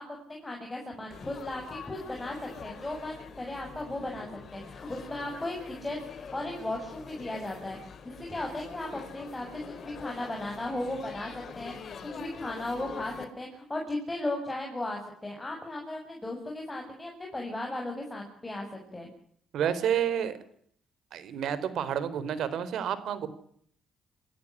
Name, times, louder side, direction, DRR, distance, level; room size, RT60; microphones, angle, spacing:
voice 1, 0.0-2.4 2.6-7.8 8.2-19.1, left 1 dB, 15° left, 1 dB, 7.6 m, -36 dB
Laughter / Chatter / Crowd, 1.1-13.2, left 6 dB, 55° left, 4.9 m, -45 dB
voice 2, 19.5-20.4 21.1-23.3, right 9 dB, 75° right, 15 dB, 4.2 m, -29 dB
27.5 x 17.0 x 10.0 m, 0.65 s
cardioid pair, 90°, 0 cm